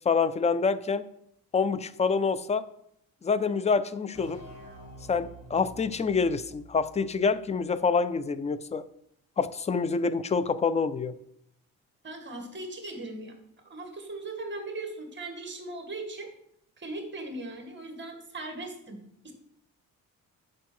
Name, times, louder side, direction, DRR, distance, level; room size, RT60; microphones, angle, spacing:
voice 1, 0.1-1.1 1.5-2.6 3.2-4.4 5.1-8.8 9.4-11.1, left 5 dB, 20° left, 14 dB, 0.4 m, -26 dB
sound 1, 4.1-7.7, right 1 dB, 70° left, 3.3 m, -48 dB
voice 2, 12.0-13.3 13.6-16.3 16.8-19.0 19.2-19.3, right 2 dB, 30° right, 4 dB, 1.8 m, -38 dB
8.2 x 5.3 x 6.2 m, 0.74 s
cardioid pair, 125°, 35 cm